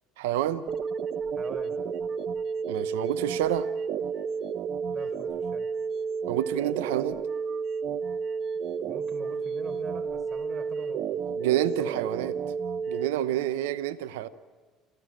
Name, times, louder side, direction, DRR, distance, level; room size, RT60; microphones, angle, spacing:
voice 1, 0.2-0.6 2.7-3.7 6.3-7.2 11.4-12.3 12.9-14.3, right 12 dB, 85° right, 0.8 m, -28 dB
sound 1, 0.7-13.1, right 6 dB, 55° right, 1.0 m, -31 dB
voice 2, 1.3-1.8 4.9-5.7 8.8-11.2 11.7-12.1, right 3 dB, 30° right, 4.2 m, -42 dB
28.5 x 14.5 x 9.1 m
hypercardioid pair, 75°, 0 cm